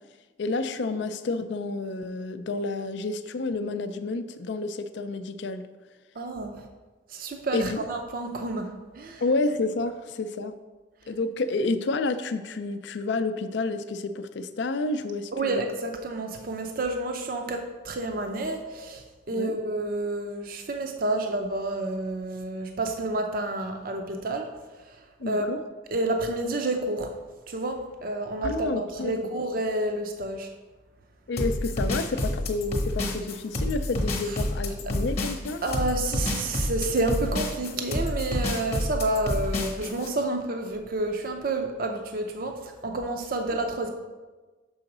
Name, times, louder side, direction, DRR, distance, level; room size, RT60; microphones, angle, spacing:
voice 1, 0.4-5.7 7.5-7.8 9.2-10.5 11.1-15.6 19.3-19.6 25.2-25.6 28.4-29.3 31.3-35.6, left 3 dB, 65° left, 10 dB, 0.4 m, -30 dB
voice 2, 6.2-6.7 7.1-9.2 15.3-24.5 24.8-25.5 25.9-27.1 27.5-30.5 35.6-43.9, right 2 dB, 45° right, 4 dB, 0.5 m, -29 dB
sound 1, 31.4-40.1, left 1 dB, 35° left, 1.0 m, -29 dB
6.2 x 3.9 x 5.9 m, 1.3 s
head